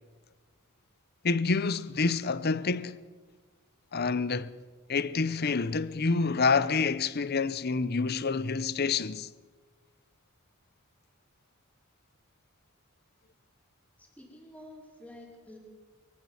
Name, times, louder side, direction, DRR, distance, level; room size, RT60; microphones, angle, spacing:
voice 1, 1.2-3.0 3.9-4.5 4.9-9.3, left 4 dB, 45° left, 0.7 m, -27 dB
voice 2, 14.2-15.6, left 1 dB, 5° left, 4.6 m, -49 dB
23.0 x 15.0 x 7.9 m
head